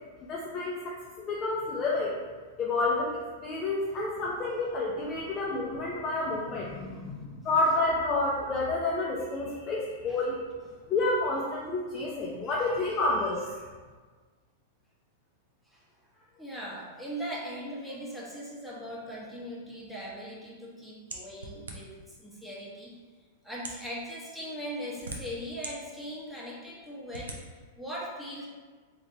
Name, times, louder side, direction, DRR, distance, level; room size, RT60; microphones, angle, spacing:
voice 1, 0.3-2.2 2.6-6.7 7.5-10.4 10.9-13.5, left 2 dB, 30° left, -4 dB, 0.5 m, -29 dB
voice 2, 6.1-7.5 10.1-10.2 12.5-13.0 13.5-13.6 15.7-15.8 16.1-23.0 23.4-28.5, equal, ahead, -7 dB, 0.9 m, -40 dB
sound 1, 21.1-22.1 22.9-23.0 23.5-23.9 24.7-25.7 26.2-26.3 27.1-27.4, right 3 dB, 80° right, 0.5 m, -40 dB
3.1 x 2.9 x 2.6 m, 1.4 s
hypercardioid pair, 105°, 0 cm